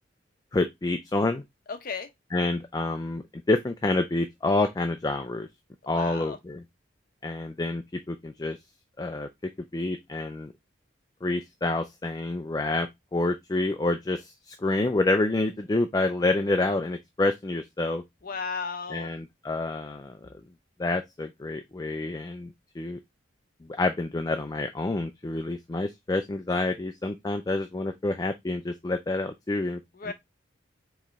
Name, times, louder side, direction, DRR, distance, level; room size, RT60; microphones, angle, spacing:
voice 1, 0.5-1.4 2.3-5.5 5.9-6.6 7.2-8.6 9.0-9.3 9.7-10.5 11.2-18.0 18.9-20.1 20.8-23.0 23.8-29.8 30.0-30.1, left 2 dB, 20° left, 0.3 m, -28 dB
voice 2, 1.7-2.1 5.9-6.4 18.2-19.1 29.9-30.1, left 5 dB, 45° left, 0.7 m, -34 dB
4.7 x 3.0 x 3.4 m
head